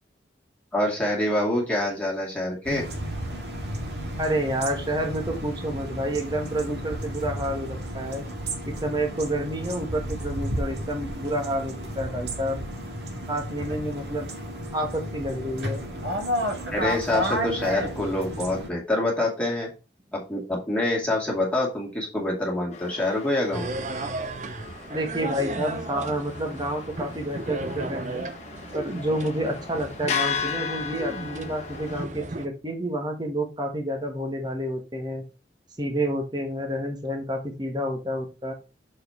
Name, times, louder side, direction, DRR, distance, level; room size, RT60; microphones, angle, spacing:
voice 1, 0.7-2.8 16.7-19.7 20.1-23.9, left 1 dB, 5° left, -3 dB, 2.2 m, -26 dB
sound 1, 2.6-18.7, equal, 70° right, 1.9 m, -32 dB
voice 2, 4.2-8.2 8.7-12.7 13.3-14.3 14.7-15.8 24.9-28.3 28.7-35.2 35.8-38.5, right 1 dB, 25° right, 3 dB, 1.3 m, -29 dB
sound 2, 22.7-32.1, left 6 dB, 40° left, 1.2 m, -36 dB
sound 3, 23.5-32.5, right 2 dB, 40° right, 0.7 m, -35 dB
6.3 x 4.8 x 4.3 m, 0.30 s
head